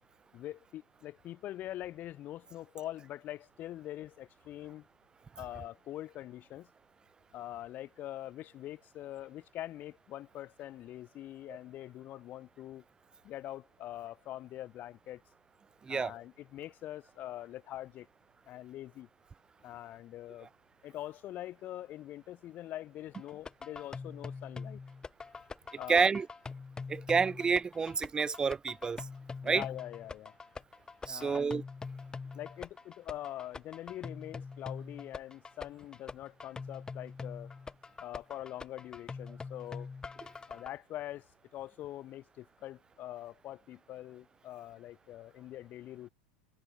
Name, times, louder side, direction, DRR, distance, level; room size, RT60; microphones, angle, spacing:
voice 1, 0.3-4.9 5.4-6.7 7.3-12.8 13.2-15.2 15.9-18.1 18.5-19.1 19.6-20.5 20.8-24.8 25.8-26.1 29.4-30.3 31.1-31.5 32.3-37.5 38.0-39.9 40.5-41.3 41.5-46.1, left 13 dB, 35° left, 1.4 m, -44 dB
sound 1, 23.1-40.7, left 4 dB, 15° left, 1.0 m, -44 dB
voice 2, 25.9-26.3 26.9-29.0 29.4-29.6 31.1-31.6, right 5 dB, 15° right, 0.5 m, -29 dB
figure-of-eight pair, 85°, 5 cm